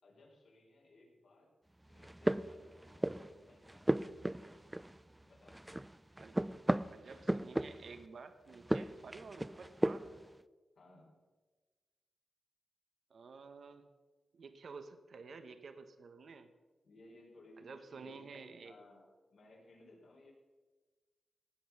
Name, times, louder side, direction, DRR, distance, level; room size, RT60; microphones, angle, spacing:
voice 1, 0.0-1.5 1.9-3.9 5.2-5.9 10.7-11.2 16.8-20.3, left 2 dB, 80° left, -2 dB, 4.0 m, -60 dB
sound 1, 1.9-3.3 3.7-5.2 5.5-8.0 8.5-10.2, right 1 dB, 10° right, 0.4 m, -35 dB
voice 2, 6.9-10.2 13.1-13.9 14.3-16.5 17.6-18.7, right 4 dB, 65° right, 9 dB, 1.0 m, -51 dB
16.0 x 9.2 x 5.9 m, 1.3 s
wide cardioid pair, 95°, 0 cm